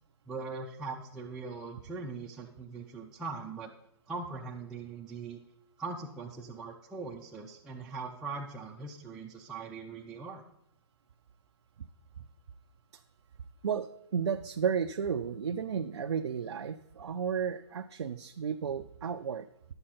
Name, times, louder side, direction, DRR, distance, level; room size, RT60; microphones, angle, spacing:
voice 1, 0.3-3.7 4.1-5.4 5.8-10.4, right 4 dB, 5° right, -5 dB, 0.4 m, -41 dB
voice 2, 13.6-19.7, right 7 dB, 90° right, 6 dB, 0.5 m, -33 dB
11.0 x 7.8 x 4.3 m, 0.75 s
hypercardioid pair, 155°, 14 cm